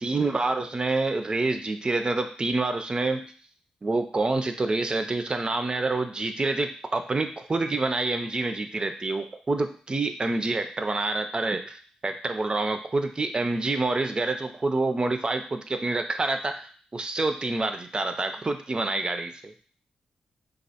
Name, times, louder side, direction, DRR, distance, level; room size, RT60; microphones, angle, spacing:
voice 1, 0.0-3.3 3.8-19.5, right 3 dB, 30° right, 7 dB, 0.3 m, -27 dB
2.3 x 2.1 x 2.7 m, 0.43 s
supercardioid pair, 50°, 3 cm